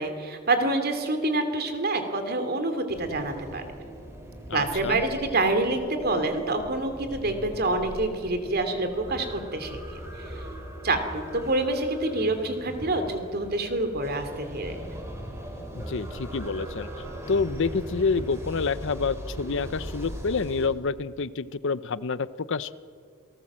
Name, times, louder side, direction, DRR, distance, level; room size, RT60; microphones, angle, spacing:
voice 1, 0.0-3.6 4.5-9.8 10.8-14.8, right 2 dB, 50° right, 7 dB, 2.8 m, -27 dB
sound 1, 2.9-20.7, equal, 15° right, 4.0 m, -40 dB
voice 2, 4.5-5.0 15.7-16.9 17.3-22.7, left 4 dB, 65° left, 16 dB, 0.6 m, -28 dB
27.5 x 19.0 x 7.5 m, 2.1 s
head